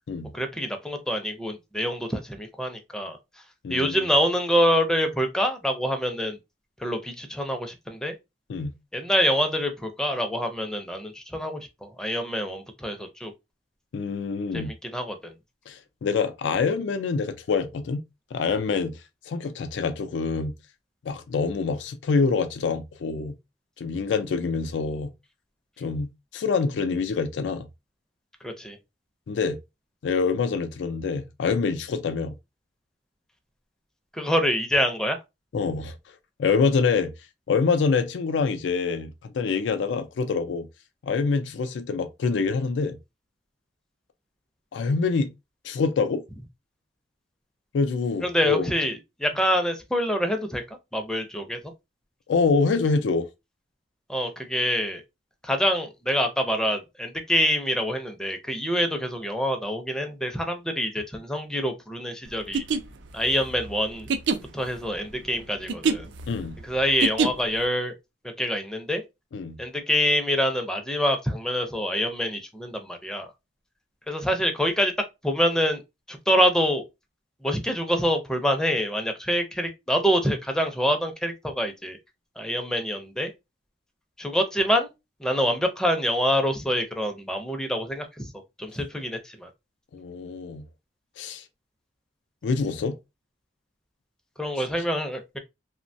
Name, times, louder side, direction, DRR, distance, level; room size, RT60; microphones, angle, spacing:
voice 1, 0.3-3.2 3.7-6.4 6.8-8.1 8.9-13.3 14.5-15.3 28.4-28.8 34.1-35.2 48.2-51.6 54.1-55.0 55.4-62.6 63.1-64.1 64.5-66.1 66.6-67.9 68.4-69.0 69.6-73.3 74.1-74.9 75.2-75.8 76.1-76.8 77.4-82.0 82.4-83.3 84.2-84.9 85.2-88.3 88.6-89.5 94.4-95.4, equal, 5° left, 0.4 m, -26 dB
voice 2, 3.6-4.0 8.5-8.7 13.9-14.7 15.7-18.0 18.3-19.0 19.3-20.5 21.0-23.3 23.8-25.1 25.8-27.7 29.3-29.6 30.0-32.3 35.5-35.9 36.4-37.1 37.5-40.7 41.0-43.0 44.7-45.3 45.6-46.2 47.7-48.7 52.3-53.3 66.3-66.6 69.3-69.6 89.9-90.6 91.2-91.4 92.4-93.0, left 4 dB, 85° left, 0.4 m, -25 dB
sound 1, 62.4-67.6, right 4 dB, 90° right, 0.4 m, -27 dB
2.9 x 2.1 x 2.6 m
head